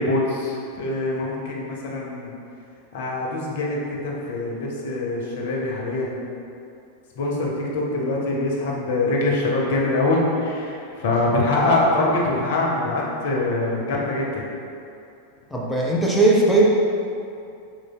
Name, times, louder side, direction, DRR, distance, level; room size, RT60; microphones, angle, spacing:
voice 1, 0.0-2.3 2.9-6.2 7.2-14.5, left 2 dB, 55° left, -3 dB, 0.7 m, -24 dB
voice 2, 15.5-16.7, right 2 dB, 5° left, -4 dB, 0.5 m, -18 dB
4.7 x 3.9 x 2.2 m, 2.6 s
figure-of-eight pair, 90°, 0 cm